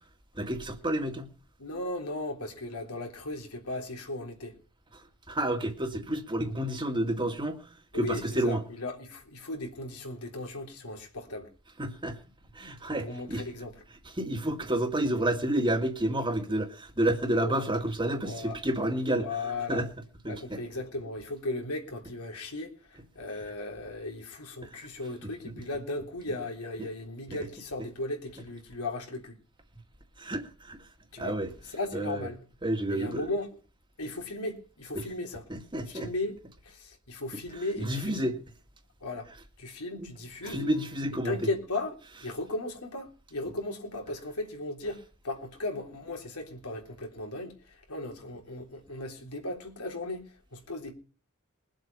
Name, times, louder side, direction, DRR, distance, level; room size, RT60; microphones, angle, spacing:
voice 1, 0.4-1.3 5.3-7.6 7.9-8.6 11.8-12.2 12.5-13.4 14.2-19.3 19.7-19.9 20.2-20.6 24.6-24.7 25.2-25.6 26.8-26.9 30.2-30.8 31.2-31.5 31.9-32.3 32.6-33.3 35.5-36.1 37.8-38.4 40.0-40.1 40.5-41.3, right 1 dB, 20° right, 2.1 m, -30 dB
voice 2, 1.6-4.6 7.9-11.5 13.0-13.8 17.4-17.6 18.2-18.6 19.1-19.8 20.3-29.4 31.1-31.4 31.7-32.4 32.9-33.6 34.0-35.4 35.9-38.3 39.0-39.3 39.6-40.9 41.2-50.9, left 2 dB, 85° left, 3.5 m, -36 dB
21.5 x 7.8 x 5.4 m
head